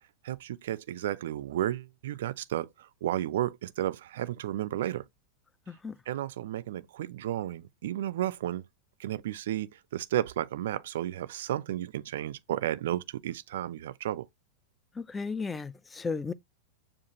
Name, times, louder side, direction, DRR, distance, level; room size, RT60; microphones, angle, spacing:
voice 1, 0.2-5.0 6.1-8.6 9.0-14.3, right 12 dB, 60° right, 0.3 m, -33 dB
voice 2, 15.0-16.3, left 4 dB, 15° left, 0.4 m, -34 dB
7.0 x 2.5 x 2.8 m
figure-of-eight pair, 90°, 0 cm